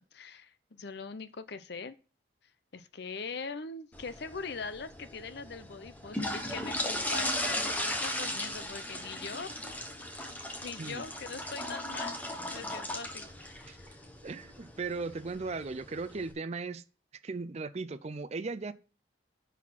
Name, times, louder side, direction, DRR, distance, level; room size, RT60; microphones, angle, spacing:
voice 1, 0.0-2.0 2.7-9.5 10.6-12.2 12.5-14.0, left 4 dB, 55° left, 0.6 m, -42 dB
sound 1, 3.9-16.3, left 1 dB, 10° left, 1.0 m, -37 dB
voice 2, 14.2-16.8 17.2-18.7, right 4 dB, 35° right, 0.4 m, -37 dB
11.0 x 4.1 x 5.8 m
head